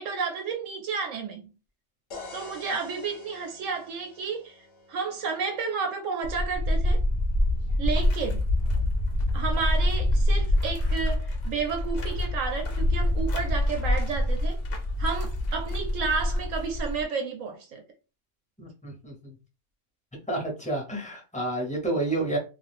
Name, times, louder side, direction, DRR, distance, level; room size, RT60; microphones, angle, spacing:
voice 1, 0.0-1.4 2.3-7.0 7.8-8.4 9.3-14.6 15.0-17.8, right 5 dB, 70° right, 1.0 m, -31 dB
sound 1, 2.1-5.9, left 3 dB, 55° left, 0.8 m, -47 dB
sound 2, 6.2-17.0, left 1 dB, 80° left, 0.4 m, -26 dB
voice 2, 18.6-19.3 20.3-22.4, right 2 dB, 5° left, 0.7 m, -30 dB
2.5 x 2.3 x 3.4 m
omnidirectional pair, 1.5 m